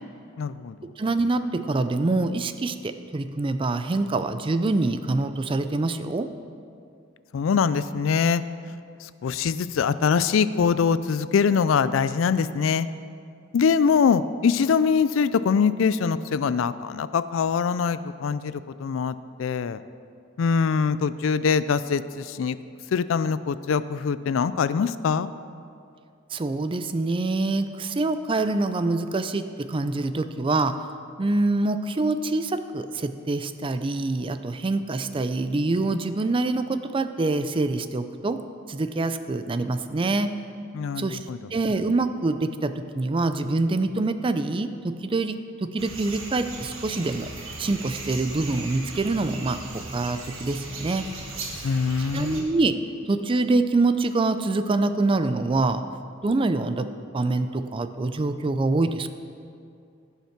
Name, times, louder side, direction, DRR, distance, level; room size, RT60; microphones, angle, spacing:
voice 1, 0.4-0.9 7.3-8.4 9.0-12.9 13.5-19.8 20.4-22.6 22.9-25.3 40.7-41.5 51.6-52.4, left 6 dB, 70° left, 15 dB, 0.4 m, -23 dB
voice 2, 1.0-6.3 26.3-30.8 31.2-38.4 38.7-40.3 41.0-41.3 41.5-47.3 47.6-51.1 51.5-51.7 52.1-52.7 53.1-55.8 56.2-56.9 57.1-59.1, right 2 dB, 25° right, 10 dB, 0.4 m, -25 dB
sound 1, 45.8-52.4, right 2 dB, 80° right, 1.6 m, -38 dB
14.5 x 5.7 x 5.9 m, 2.4 s
head